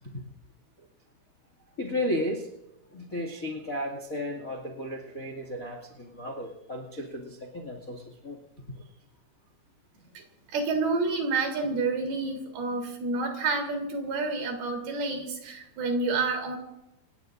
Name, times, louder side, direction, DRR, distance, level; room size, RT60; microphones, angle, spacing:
voice 1, 1.8-2.5 2.9-8.4, left 1 dB, 40° left, 2 dB, 1.2 m, -34 dB
voice 2, 10.5-16.6, right 3 dB, 60° right, 2 dB, 5.1 m, -29 dB
28.0 x 19.0 x 2.6 m, 0.90 s
omnidirectional pair, 5.3 m